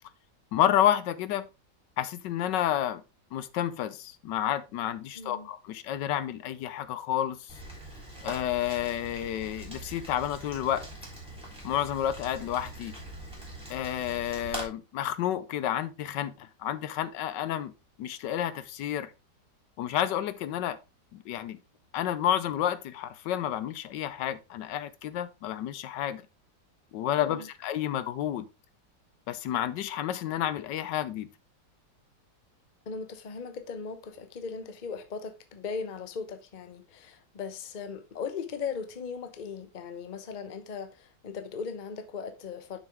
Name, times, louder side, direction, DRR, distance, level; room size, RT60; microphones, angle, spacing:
voice 1, 0.5-1.5 2.0-3.0 3.3-7.6 8.2-10.9 11.6-12.9 13.7-17.7 18.0-19.1 19.8-20.8 21.1-21.6 21.9-26.2 26.9-28.5 29.3-31.3, left 11 dB, 75° left, 1.2 m, -30 dB
voice 2, 5.1-5.5 27.2-27.5 32.9-42.8, left 5 dB, 40° left, 0.7 m, -38 dB
Rain, 7.5-14.6, right 1 dB, 5° right, 3.4 m, -43 dB
7.1 x 6.2 x 3.5 m
omnidirectional pair, 2.0 m